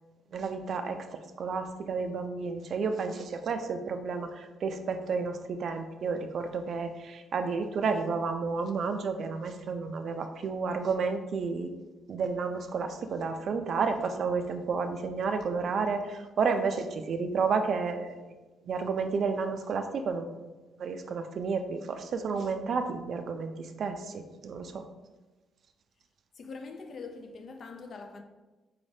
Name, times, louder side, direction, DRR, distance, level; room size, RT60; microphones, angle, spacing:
voice 1, 0.3-11.7 12.1-18.4 18.6-20.5 20.8-24.8, right 5 dB, 60° right, 0.4 m, -31 dB
voice 2, 26.3-28.2, left 4 dB, 50° left, 0.4 m, -43 dB
4.0 x 3.2 x 2.7 m
cardioid pair, 90°, 0 cm